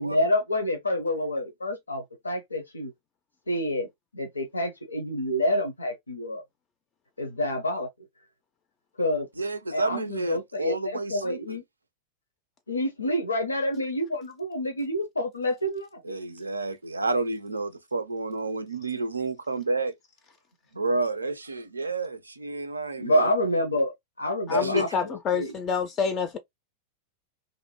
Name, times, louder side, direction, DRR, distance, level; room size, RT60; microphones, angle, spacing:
voice 1, 0.0-2.9 3.5-3.9 4.1-6.4 7.2-7.9 9.0-9.3 9.7-11.6 12.7-16.2 23.0-23.9 24.2-25.5, left 1 dB, 80° left, 0.5 m, -28 dB
voice 2, 9.4-11.6 16.0-19.9 20.7-23.3 24.5-24.9, right 3 dB, 80° right, 0.4 m, -30 dB
voice 3, 24.5-26.4, left 6 dB, 30° left, 0.4 m, -27 dB
2.5 x 2.0 x 2.9 m
figure-of-eight pair, 90°, 0 cm